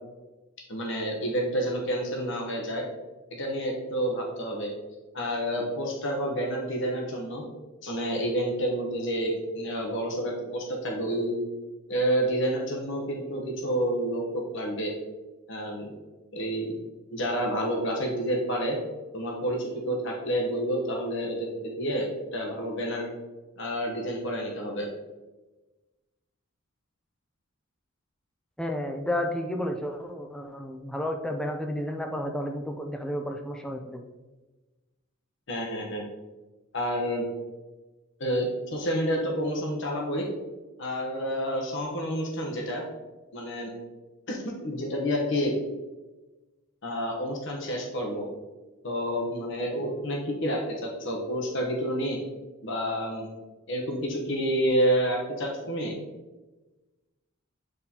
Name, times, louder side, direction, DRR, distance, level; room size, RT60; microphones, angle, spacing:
voice 1, 0.7-2.8 3.3-4.7 5.1-7.4 7.8-11.4 11.9-14.9 15.5-15.9 16.3-16.8 17.1-18.8 19.1-23.1 23.6-24.9 35.5-36.0 36.7-37.3 38.2-40.3 40.8-42.8 43.3-43.7 44.3-45.5 46.8-48.3 48.8-52.2 52.6-53.3 53.7-55.9, equal, 55° left, 0 dB, 1.0 m, -29 dB
voice 2, 28.6-34.0, left 1 dB, 5° left, 3 dB, 0.4 m, -32 dB
8.1 x 4.1 x 2.8 m, 1.2 s
head